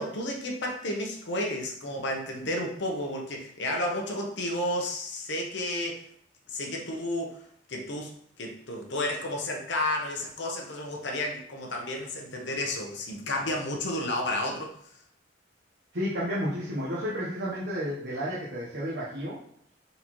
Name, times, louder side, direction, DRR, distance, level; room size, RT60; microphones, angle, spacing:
voice 1, 0.0-6.0 6.5-7.4 7.7-8.1 8.4-14.9, left 1 dB, 65° left, 1 dB, 0.8 m, -32 dB
voice 2, 15.9-19.4, equal, 60° right, -6 dB, 0.9 m, -31 dB
3.9 x 3.9 x 3.0 m, 0.64 s
head